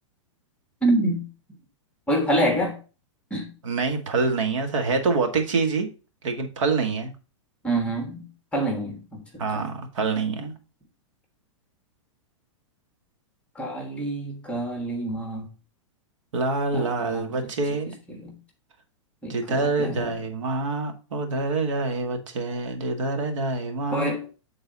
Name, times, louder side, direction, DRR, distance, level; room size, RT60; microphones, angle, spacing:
voice 1, 0.8-1.2 2.1-2.8 3.3-3.5 7.6-9.7 13.5-15.5 16.7-17.2 18.1-18.4 19.2-20.1 23.9-24.3, right 1 dB, 5° left, 1.4 m, -27 dB
voice 2, 3.6-5.9 6.2-7.1 9.4-10.5 16.3-17.9 19.3-24.1, right 3 dB, 80° right, 1.5 m, -26 dB
8.4 x 3.9 x 3.9 m
hypercardioid pair, 135°, 16 cm